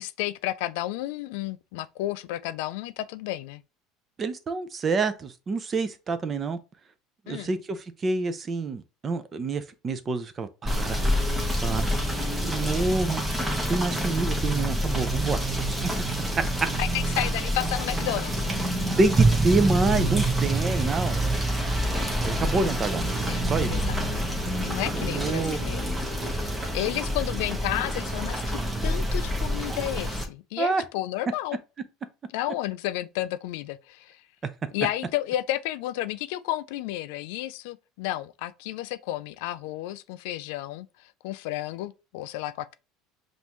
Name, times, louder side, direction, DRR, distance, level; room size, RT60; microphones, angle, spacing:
voice 1, 0.0-3.6 7.3-7.5 16.8-18.6 23.3-23.4 23.7-24.2 24.6-25.8 26.3-31.6 32.3-34.2 34.7-42.7, left 15 dB, 80° left, 0.3 m, -32 dB
voice 2, 4.2-6.6 7.3-11.0 11.6-11.9 12.4-13.3 13.7-15.4 19.0-21.2 22.2-23.1 23.4-23.7 24.9-25.6 30.6-30.8 34.4-34.5, right 3 dB, 25° right, 0.5 m, -27 dB
Rain / Motor vehicle (road), 10.6-30.2, right 1 dB, 10° right, 0.9 m, -27 dB
5.3 x 2.6 x 3.0 m
cardioid pair, 140°, 0 cm